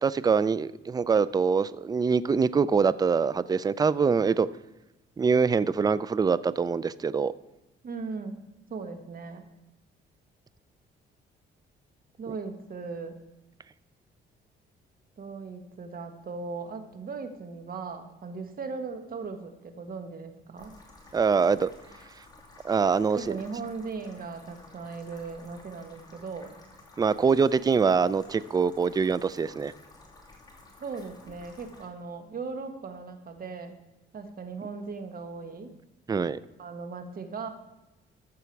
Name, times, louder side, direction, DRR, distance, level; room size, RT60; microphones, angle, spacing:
voice 1, 0.0-4.5 5.2-7.3 21.1-21.7 22.6-23.3 27.0-29.7 36.1-36.4, right 5 dB, 20° right, 17 dB, 0.4 m, -24 dB
voice 2, 7.8-8.4 8.7-9.4 12.2-13.2 15.2-20.8 23.1-26.5 30.8-33.7 34.1-35.7 36.6-37.5, right 4 dB, 45° right, 7 dB, 1.4 m, -38 dB
sound 1, 20.6-31.9, left 2 dB, 20° left, 2.7 m, -53 dB
13.5 x 6.9 x 4.6 m, 0.99 s
cardioid pair, 90°, 20 cm